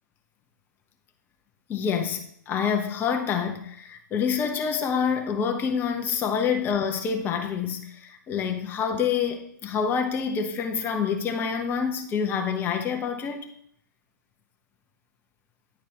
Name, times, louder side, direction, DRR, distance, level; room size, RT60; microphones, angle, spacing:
voice 1, 1.7-13.5, left 6 dB, 20° left, 1.1 m, -27 dB
9.8 x 4.6 x 4.5 m
hypercardioid pair, 130°, 10 cm